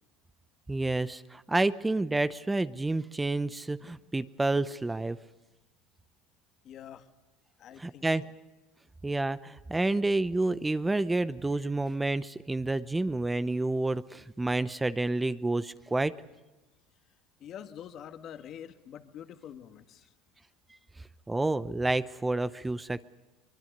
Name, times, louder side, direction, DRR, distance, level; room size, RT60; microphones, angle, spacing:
voice 1, 0.7-5.2 7.8-8.2 9.0-16.1 21.3-23.0, right 2 dB, 10° right, 14 dB, 0.8 m, -29 dB
voice 2, 6.6-7.1 7.6-8.3 17.4-20.1, left 9 dB, 50° left, 8 dB, 1.8 m, -46 dB
23.5 x 22.0 x 6.7 m, 1.1 s
supercardioid pair, 100°, 0 cm